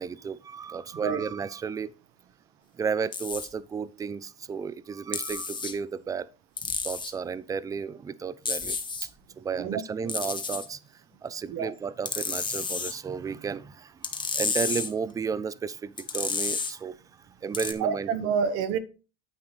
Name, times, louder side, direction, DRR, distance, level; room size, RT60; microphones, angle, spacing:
voice 1, 0.0-1.9 2.7-6.3 6.8-9.1 9.4-18.1, right 6 dB, 10° right, 0.3 m, -33 dB
sound 1, 3.1-3.5 5.1-5.7 6.6-7.1 8.5-9.1 10.1-10.7 12.1-12.9 14.0-14.9 16.0-16.7 17.5-17.7, left 5 dB, 15° left, 1.0 m, -31 dB
voice 2, 9.6-10.1 11.5-11.7 17.8-18.8, right 6 dB, 50° right, 0.9 m, -28 dB
9.5 x 7.8 x 3.2 m
supercardioid pair, 120°, 30 cm